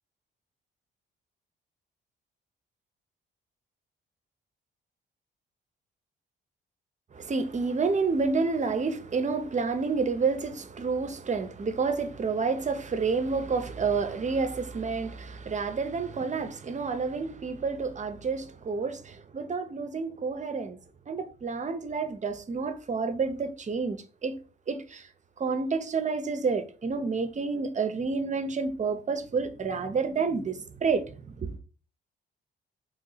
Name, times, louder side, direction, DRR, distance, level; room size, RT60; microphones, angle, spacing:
voice 1, 7.1-20.8 21.1-24.4 24.7-25.1 25.4-31.6, right 4 dB, 35° right, 0.6 m, -29 dB
3.0 x 2.7 x 4.0 m
cardioid pair, 75°, 21 cm